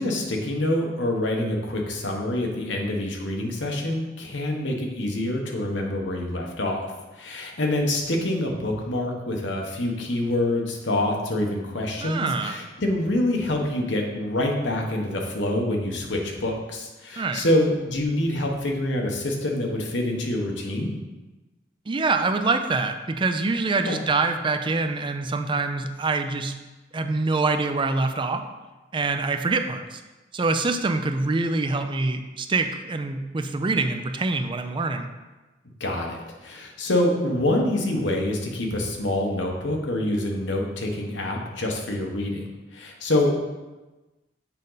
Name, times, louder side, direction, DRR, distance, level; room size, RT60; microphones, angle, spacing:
voice 1, 0.0-6.8 7.2-20.9 23.9-24.0 35.8-43.4, left 1 dB, 80° left, 1 dB, 1.2 m, -26 dB
voice 2, 12.0-12.6 17.2-17.4 21.9-26.5 26.9-28.4 28.9-30.0 30.3-35.1, right 3 dB, 25° right, 7 dB, 0.4 m, -25 dB
7.4 x 5.3 x 4.0 m, 1.1 s
head